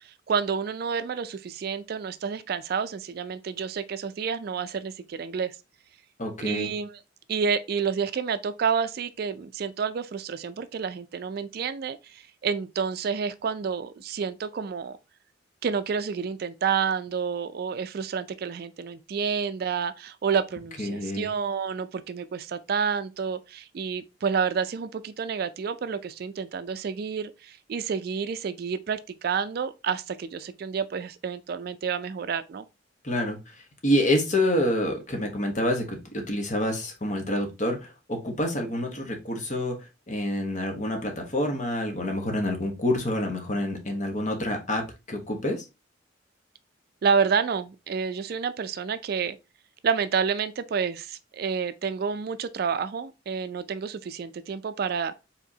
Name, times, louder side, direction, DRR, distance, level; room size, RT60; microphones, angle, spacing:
voice 1, 0.3-5.6 6.4-7.0 7.3-15.0 15.6-32.7 47.0-49.4 49.8-55.1, right 6 dB, 55° right, 0.3 m, -29 dB
voice 2, 6.2-6.7 20.8-21.3 33.0-33.4 33.8-39.8 40.1-45.6, left 1 dB, 40° left, 1.1 m, -27 dB
4.8 x 3.6 x 2.7 m
head